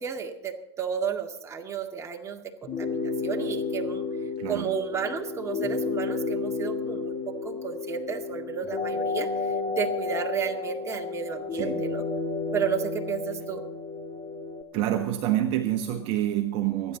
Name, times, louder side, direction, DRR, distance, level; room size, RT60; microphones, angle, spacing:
voice 1, 0.0-4.1 4.5-7.1 7.4-12.0 12.5-13.6, right 7 dB, 20° right, 2 dB, 2.1 m, -32 dB
sound 1, 2.6-14.6, left 4 dB, 30° left, 2.5 m, -31 dB
voice 2, 4.4-4.8 11.5-11.8 14.7-17.0, right 12 dB, 45° right, 6 dB, 1.3 m, -27 dB
27.5 x 10.0 x 4.1 m, 0.87 s
hypercardioid pair, 100°, 14 cm